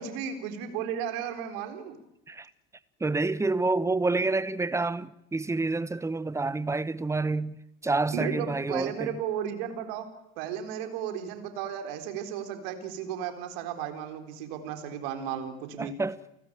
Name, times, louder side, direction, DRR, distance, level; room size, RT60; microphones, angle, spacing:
voice 1, 0.0-2.0 8.1-10.1 10.4-15.9, right 8 dB, 60° right, 4.0 m, -34 dB
voice 2, 3.0-9.2 15.8-16.2, right 3 dB, 10° right, 1.2 m, -28 dB
30.0 x 18.5 x 8.9 m
figure-of-eight pair, 65°, 31 cm